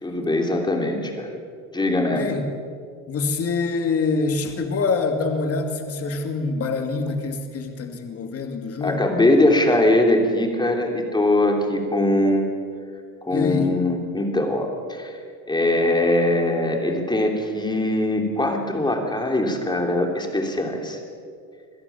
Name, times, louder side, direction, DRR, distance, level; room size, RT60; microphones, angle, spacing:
voice 1, 0.0-1.3 1.7-2.3 8.8-12.4 13.2-15.1 15.5-21.0, left 1 dB, 10° left, 2 dB, 3.2 m, -21 dB
voice 2, 2.1-2.4 3.1-9.0 13.3-13.7, left 4 dB, 35° left, 5 dB, 2.4 m, -25 dB
26.0 x 17.0 x 7.1 m, 2.2 s
cardioid pair, 140°, 39 cm